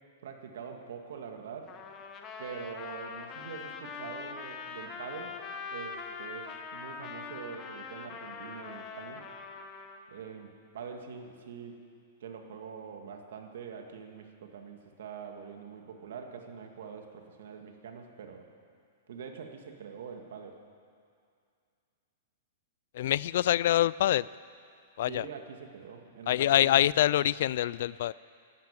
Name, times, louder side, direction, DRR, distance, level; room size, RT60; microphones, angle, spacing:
voice 1, 0.2-1.7 2.4-5.4 5.7-9.2 10.1-11.8 12.2-18.5 19.1-20.6 25.1-26.7, right 6 dB, 75° right, 4 dB, 2.1 m, -44 dB
Trumpet, 1.7-10.0, left 5 dB, 25° left, 1.4 m, -42 dB
voice 2, 22.9-24.3 25.0-25.3 26.3-28.1, left 12 dB, 65° left, 21 dB, 0.3 m, -25 dB
12.5 x 11.5 x 8.9 m, 2.3 s
hypercardioid pair, 145°, 0 cm